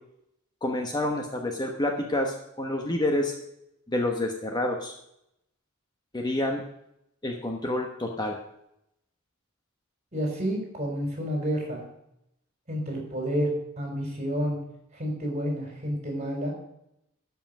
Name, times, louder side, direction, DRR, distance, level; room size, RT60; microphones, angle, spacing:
voice 1, 0.6-3.3 3.9-4.9 6.1-6.6 7.2-8.4, left 1 dB, 20° left, 2 dB, 1.1 m, -28 dB
voice 2, 10.1-11.8 12.7-13.5 13.8-14.6 14.9-16.5, equal, 30° right, 1 dB, 4.4 m, -29 dB
13.0 x 5.8 x 7.5 m, 0.79 s
head